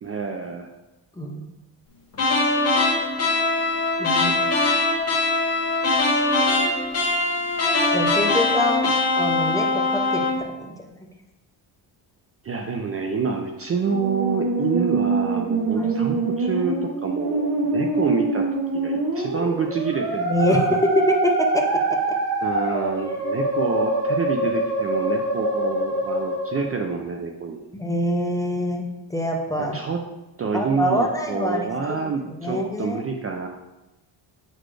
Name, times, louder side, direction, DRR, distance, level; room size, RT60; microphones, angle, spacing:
voice 1, 0.0-0.7 12.4-18.4 18.7-20.8 22.4-27.7 29.6-30.0 30.4-33.5, right 5 dB, 35° right, 3 dB, 0.4 m, -27 dB
voice 2, 1.2-1.5 4.0-4.3 7.9-10.7 15.8-15.9 20.2-20.7 21.1-21.6 27.7-29.8 30.5-33.0, equal, 10° left, 1 dB, 0.6 m, -26 dB
sound 1, 2.1-10.4, left 2 dB, 35° left, 1.3 m, -22 dB
Musical instrument, 13.8-26.8, right 2 dB, 65° right, 2.3 m, -24 dB
7.7 x 4.1 x 3.2 m, 0.98 s
cardioid pair, 130°, 45 cm